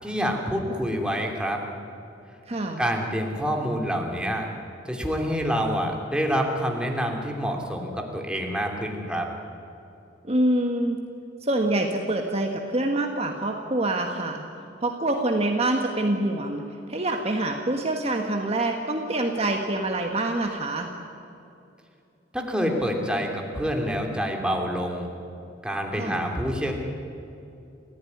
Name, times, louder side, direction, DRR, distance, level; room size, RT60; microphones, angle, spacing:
voice 1, 0.0-1.6 2.8-4.5 4.9-9.3 22.3-25.1 25.6-26.7, equal, 5° right, 1 dB, 2.8 m, -27 dB
voice 2, 2.5-2.8 10.2-11.0 11.4-14.4 14.8-16.6 16.9-20.9 25.9-26.2, right 1 dB, 35° right, 3 dB, 1.5 m, -26 dB
29.5 x 15.0 x 9.6 m, 2.7 s
head